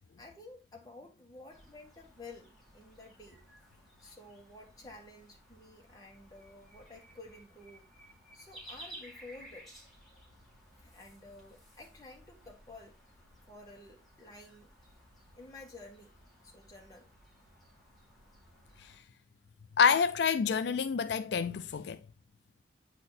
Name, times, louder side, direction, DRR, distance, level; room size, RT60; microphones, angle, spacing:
voice 1, 0.2-3.4 4.0-7.9 8.3-9.7 10.8-13.0 13.5-14.7 15.4-16.1 16.4-17.1, left 2 dB, 20° left, 2.0 m, -52 dB
sound 1, 1.5-19.0, right 1 dB, ahead, 2.7 m, -56 dB
voice 2, 19.8-22.0, left 6 dB, 70° left, 0.4 m, -27 dB
8.6 x 4.2 x 4.2 m
head